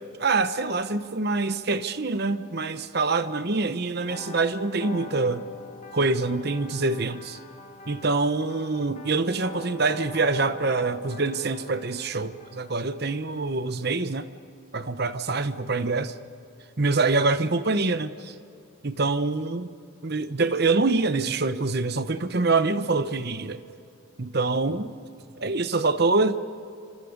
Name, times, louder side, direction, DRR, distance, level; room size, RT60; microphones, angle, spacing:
voice 1, 0.2-5.4 5.9-7.4 7.9-14.3 14.7-16.1 16.8-18.3 18.8-19.7 20.0-23.6 24.2-24.9 25.4-26.4, right 3 dB, 50° right, 11 dB, 1.0 m, -25 dB
sound 1, 4.0-13.6, left 2 dB, 35° left, 1.9 m, -44 dB
27.5 x 26.5 x 5.3 m, 2.6 s
head